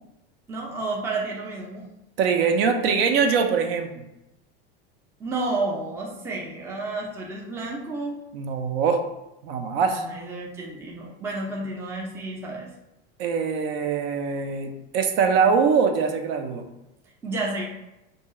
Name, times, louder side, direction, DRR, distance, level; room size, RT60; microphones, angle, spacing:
voice 1, 0.5-1.9 5.2-8.2 9.9-12.7 17.2-17.6, right 2 dB, 10° right, -2 dB, 0.3 m, -31 dB
voice 2, 2.2-4.1 8.3-9.0 9.4-10.0 13.2-16.6, right 5 dB, 75° right, 5 dB, 0.5 m, -23 dB
2.6 x 2.3 x 2.9 m, 0.92 s
supercardioid pair, 130°, 30 cm